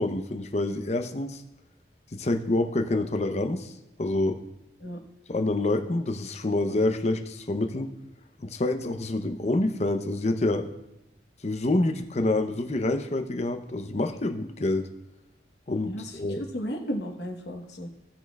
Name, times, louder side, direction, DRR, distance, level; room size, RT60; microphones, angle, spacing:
voice 1, 0.0-1.4 2.1-3.7 4.0-4.4 5.3-7.9 8.4-10.7 11.4-14.9 15.7-16.5, left 2 dB, 35° left, 7 dB, 0.6 m, -27 dB
voice 2, 15.8-17.9, equal, 60° left, 2 dB, 1.1 m, -34 dB
16.5 x 6.3 x 2.3 m, 0.89 s
head